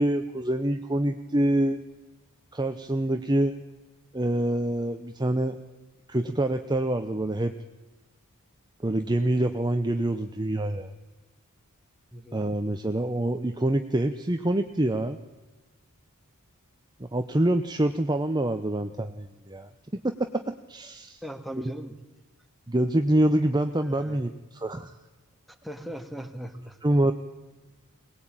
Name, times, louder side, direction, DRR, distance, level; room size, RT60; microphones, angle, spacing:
voice 1, 0.0-1.8 2.5-3.6 4.1-5.6 6.1-7.6 8.8-10.9 12.3-15.2 17.0-21.2 22.7-24.9 26.8-27.1, right 1 dB, 20° right, 7 dB, 0.8 m, -26 dB
voice 2, 12.1-12.4 21.2-22.0 23.7-24.2 25.6-26.8, equal, ahead, 7 dB, 2.0 m, -39 dB
23.0 x 19.5 x 8.9 m, 1.2 s
head